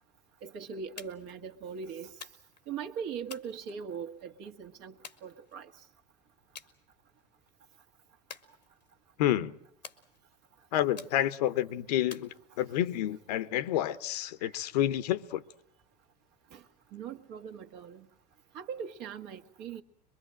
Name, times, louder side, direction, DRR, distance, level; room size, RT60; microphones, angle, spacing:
voice 1, 0.4-2.1 2.7-4.9 5.2-5.7 14.4-14.5 16.5-16.6 16.9-18.1 18.5-19.8, right 6 dB, 60° right, 1.7 m, -40 dB
sound 1, 1.0-1.4 2.2-2.7 3.3-4.2 5.0-5.9 6.6-6.8 7.2-7.5 8.3-9.1 9.8-10.5 11.0-11.5 12.1-12.9, left 6 dB, 90° left, 1.4 m, -50 dB
voice 2, 9.2-9.6 10.7-12.3 12.6-15.4, left 12 dB, 70° left, 1.0 m, -29 dB
24.0 x 23.0 x 7.5 m
hypercardioid pair, 75°, 21 cm